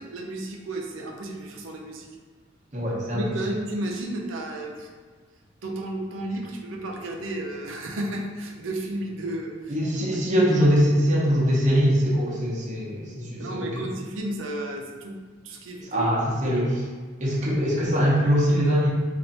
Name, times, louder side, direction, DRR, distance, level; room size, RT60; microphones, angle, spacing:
voice 1, 0.0-2.1 3.1-4.9 5.6-9.5 13.4-15.1 15.4-16.1 16.4-16.6, right 1 dB, 85° right, 1 dB, 0.6 m, -32 dB
voice 2, 2.7-3.2 9.7-13.9 15.8-16.8 17.2-18.9, equal, 35° right, -5 dB, 0.8 m, -22 dB
3.2 x 2.5 x 4.0 m, 1.5 s
head